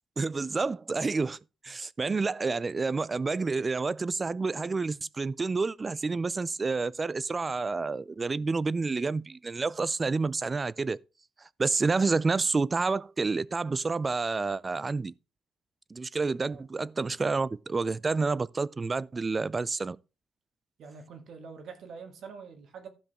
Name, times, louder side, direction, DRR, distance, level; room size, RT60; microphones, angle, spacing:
voice 1, 0.2-1.4 1.6-11.0 11.6-15.1 15.9-20.0, right 4 dB, 25° right, 0.3 m, -29 dB
voice 2, 20.8-22.9, right 5 dB, 65° right, 2.0 m, -45 dB
15.0 x 5.2 x 3.6 m
cardioid pair, 130°, 0 cm